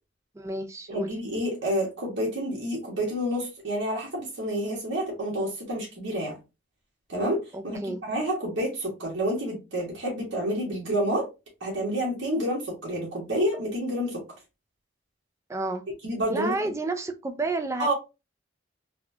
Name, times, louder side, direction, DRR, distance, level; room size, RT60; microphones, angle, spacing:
voice 1, 0.3-1.1 7.5-8.0 15.5-15.8 16.3-17.9, right 2 dB, 15° right, 0.3 m, -31 dB
voice 2, 0.9-6.4 7.1-11.3 11.6-14.2 16.0-16.5 17.8-17.9, equal, 80° right, 1.4 m, -29 dB
4.0 x 2.3 x 2.7 m
head